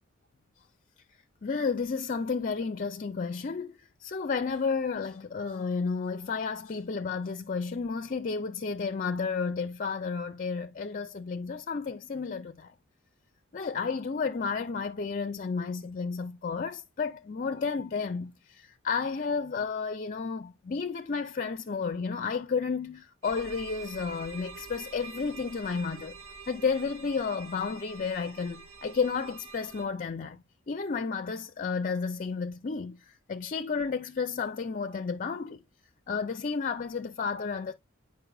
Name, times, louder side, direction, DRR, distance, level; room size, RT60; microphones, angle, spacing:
voice 1, 1.4-12.7 13.5-26.2 26.5-35.6 36.1-37.7, left 5 dB, 40° left, 0.4 m, -32 dB
sound 1, 23.2-29.8, right 5 dB, 80° right, 1.2 m, -46 dB
8.9 x 5.3 x 2.3 m
head